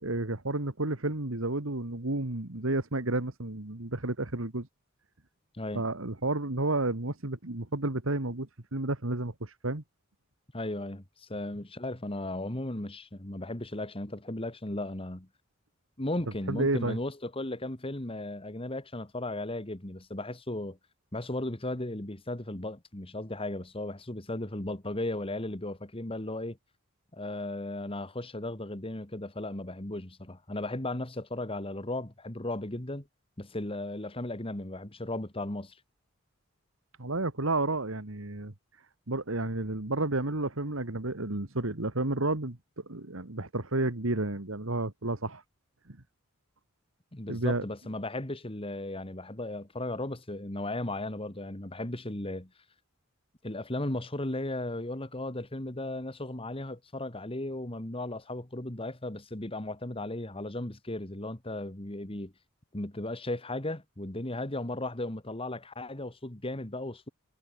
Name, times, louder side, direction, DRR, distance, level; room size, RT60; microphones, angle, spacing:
voice 1, 0.0-4.7 5.7-9.8 16.5-17.0 37.0-38.5 39.1-45.4 45.9-46.0 47.3-47.6, right 2 dB, 70° right, 2.1 m, -31 dB
voice 2, 10.5-15.3 16.0-20.8 21.1-26.6 27.1-33.0 33.4-35.8 47.1-52.5 53.4-62.3 62.7-67.1, left 1 dB, 25° left, 2.0 m, -36 dB
head